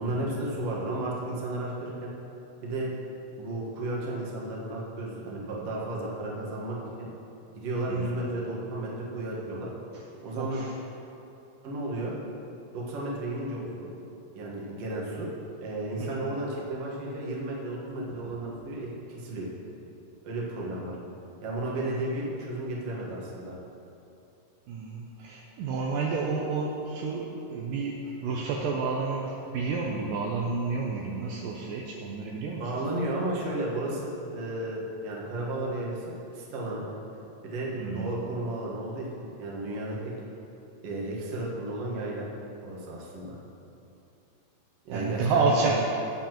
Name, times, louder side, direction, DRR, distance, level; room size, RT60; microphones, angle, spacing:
voice 1, 0.0-2.1 2.6-2.9 3.4-7.1 7.6-9.7 10.2-10.6 11.6-12.2 12.7-13.9 14.3-15.3 15.6-19.5 20.2-21.0 21.4-23.5 32.6-36.8 37.4-40.1 40.8-42.3 42.6-43.4 44.9-45.7, right 1 dB, 55° right, -4 dB, 2.1 m, -33 dB
voice 2, 10.3-10.7 16.0-16.2 18.1-18.2 21.8-21.9 24.7-32.7 37.8-38.1 44.9-45.8, right 4 dB, 75° right, -2 dB, 2.2 m, -30 dB
17.0 x 7.1 x 3.0 m, 2.8 s
omnidirectional pair, 4.2 m